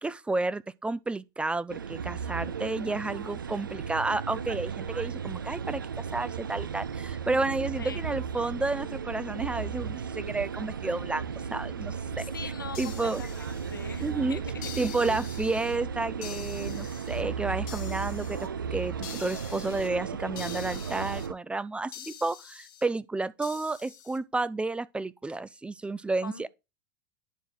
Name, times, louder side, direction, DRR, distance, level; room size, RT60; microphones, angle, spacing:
voice 1, 0.0-12.3 12.8-13.2 14.0-14.4 14.8-18.4 18.7-26.5, right 3 dB, 10° right, 0.4 m, -31 dB
sound 1, 1.7-21.3, right 6 dB, 80° right, 0.4 m, -35 dB
voice 2, 7.8-8.1 12.2-14.9 26.2-26.5, left 5 dB, 80° left, 1.0 m, -42 dB
sound 2, 12.7-14.1 14.6-15.8 16.2-17.2 17.7-18.5 19.0-19.9 20.4-21.3 21.9-22.9 23.4-24.2, left 11 dB, 60° left, 1.5 m, -45 dB
10.0 x 4.6 x 3.9 m
figure-of-eight pair, 80°, 11 cm